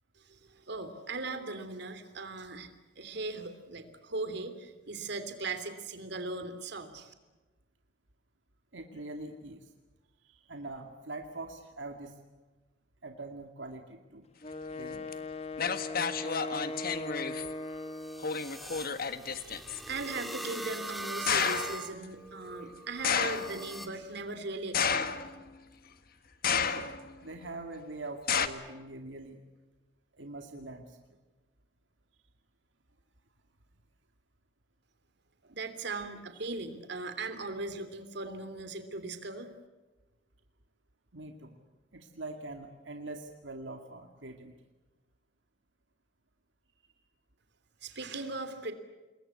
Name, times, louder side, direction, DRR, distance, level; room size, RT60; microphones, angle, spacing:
voice 1, 0.2-7.1 19.4-25.1 35.5-39.5 47.8-48.7, right 3 dB, 65° right, 9 dB, 3.1 m, -39 dB
voice 2, 8.7-9.7 10.2-12.2 13.0-14.3 14.7-15.1 26.5-26.9 27.2-29.4 30.1-31.0 35.4-35.6 41.1-41.6 41.9-44.5 46.8-46.9, right 2 dB, 85° right, 4 dB, 2.4 m, -43 dB
Wind instrument woodwind instrument, 14.4-18.4, left 2 dB, 35° left, 1.5 m, -39 dB
sound 1, 15.1-15.2 15.6-17.5 18.2-19.8 21.3-21.8 23.0-23.6 24.7-25.5 26.4-27.1 28.3-28.5, left 6 dB, 55° left, 1.6 m, -31 dB
sound 2, 16.4-23.9, right 1 dB, ahead, 2.3 m, -42 dB
28.0 x 21.5 x 8.4 m, 1.2 s
head